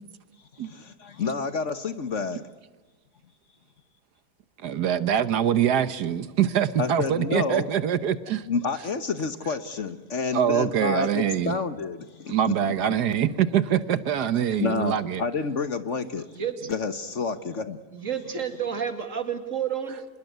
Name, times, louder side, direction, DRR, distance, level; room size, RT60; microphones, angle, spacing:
voice 1, 0.6-2.4 6.8-7.6 8.5-12.3 12.7-12.8 14.6-16.3 16.7-17.8, left 4 dB, 50° left, 11 dB, 1.4 m, -29 dB
voice 2, 4.6-8.5 10.3-11.6 12.3-15.2, right 9 dB, 75° right, 14 dB, 1.5 m, -24 dB
voice 3, 16.4-16.7 17.9-20.1, right 8 dB, 50° right, 7 dB, 2.8 m, -30 dB
26.0 x 21.0 x 8.0 m, 1.2 s
omnidirectional pair, 1.8 m